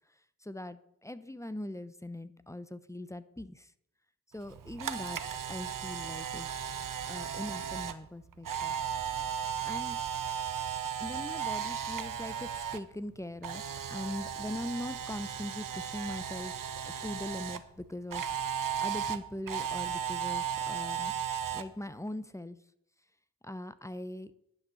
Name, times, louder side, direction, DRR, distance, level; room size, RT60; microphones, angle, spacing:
voice 1, 0.4-3.7 4.3-5.2 5.5-6.5 7.1-8.7 9.6-10.0 11.0-13.6 13.9-16.6 16.8-18.3 18.6-21.1 21.5-22.6 23.4-24.3, left 1 dB, 10° left, 14 dB, 0.8 m, -41 dB
Camera, 4.4-12.8 13.1-17.6 18.1-21.6, right 8 dB, 65° right, 0.9 m, -35 dB
10.5 x 6.1 x 6.9 m, 0.76 s
cardioid pair, 55°, 35 cm